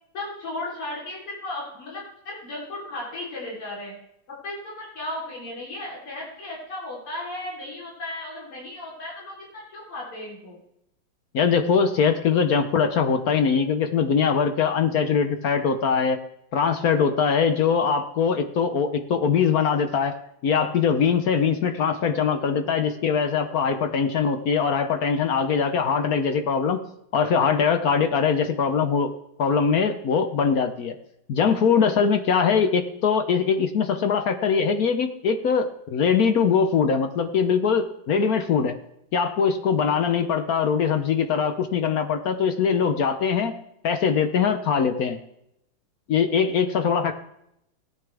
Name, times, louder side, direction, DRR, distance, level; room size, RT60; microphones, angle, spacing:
voice 1, 0.1-3.9 4.3-10.6, left 1 dB, 85° left, -5 dB, 4.6 m, -35 dB
voice 2, 11.3-16.2 16.5-20.2 20.4-26.8 27.1-29.1 29.4-30.9 31.3-38.7 39.1-43.5 43.8-45.2 46.1-47.1, left 6 dB, 60° left, 8 dB, 1.0 m, -22 dB
17.0 x 10.0 x 3.4 m, 0.78 s
omnidirectional pair, 2.3 m